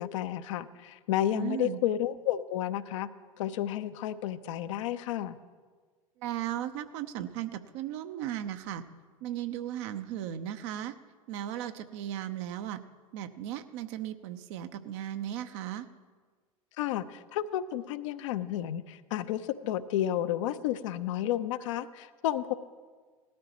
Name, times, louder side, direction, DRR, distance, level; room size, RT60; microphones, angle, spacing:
voice 1, 0.0-3.1 3.4-5.4 16.8-22.5, left 12 dB, 60° left, 11 dB, 0.7 m, -31 dB
voice 2, 1.3-1.8 6.2-8.9 9.2-10.9 11.3-12.8 13.1-15.9, right 11 dB, 55° right, 9 dB, 0.8 m, -36 dB
18.5 x 13.0 x 3.0 m, 1.5 s
figure-of-eight pair, 80°, 18 cm